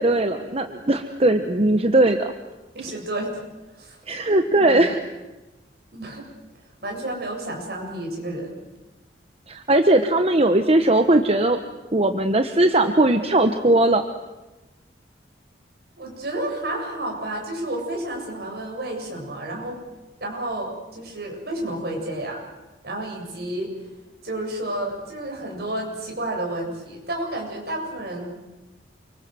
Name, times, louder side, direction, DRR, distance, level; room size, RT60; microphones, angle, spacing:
voice 1, 0.0-2.3 4.1-5.0 9.5-11.6 11.9-14.0, right 1 dB, 35° right, 7 dB, 1.1 m, -19 dB
voice 2, 2.7-3.4 3.7-4.0 4.5-4.9 5.9-6.2 6.8-8.5 16.0-19.8 20.2-22.4 22.8-23.7 24.2-28.3, right 1 dB, 60° right, 1 dB, 7.9 m, -31 dB
28.5 x 24.5 x 7.9 m, 1.1 s
head